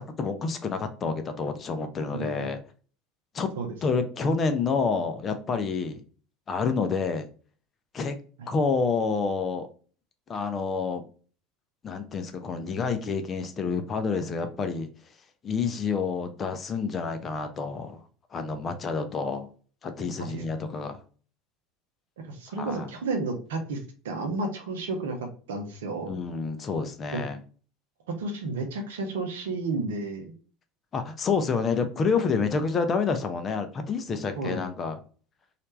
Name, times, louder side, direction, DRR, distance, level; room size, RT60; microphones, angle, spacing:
voice 1, 0.0-2.6 3.3-3.5 3.8-6.0 6.5-7.3 7.9-8.1 8.5-9.7 10.3-11.0 11.8-14.9 15.4-18.0 18.3-19.5 19.8-21.0 22.6-22.9 26.1-27.4 30.9-35.0, left 5 dB, 30° left, 0.5 m, -28 dB
voice 2, 2.1-2.5 3.6-3.7 8.4-8.5 20.3-20.4 22.3-23.8 24.0-26.2 27.1-27.2 28.1-30.3 34.4-34.7, right 3 dB, 65° right, 0.7 m, -32 dB
3.2 x 2.4 x 3.0 m
figure-of-eight pair, 70°, 0 cm